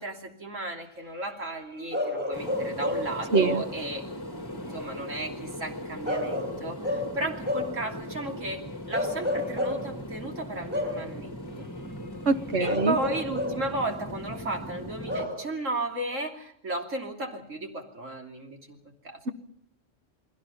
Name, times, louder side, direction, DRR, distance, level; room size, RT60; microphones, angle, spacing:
voice 1, 0.0-4.0 4.7-11.7 12.6-19.2, right 2 dB, 80° right, 2 dB, 3.4 m, -34 dB
Bark / Livestock farm animals working animals, 1.9-3.7 6.1-7.8 8.9-9.9 10.7-11.1 12.7-13.7 15.1-15.5, left 1 dB, 10° right, 5.1 m, -30 dB
sound 1, 2.3-15.3, left 1 dB, 20° left, 2.0 m, -39 dB
voice 2, 3.3-3.6 12.3-12.9, right 4 dB, 60° right, 9 dB, 1.6 m, -24 dB
29.5 x 21.0 x 5.7 m, 0.67 s
omnidirectional pair, 1.3 m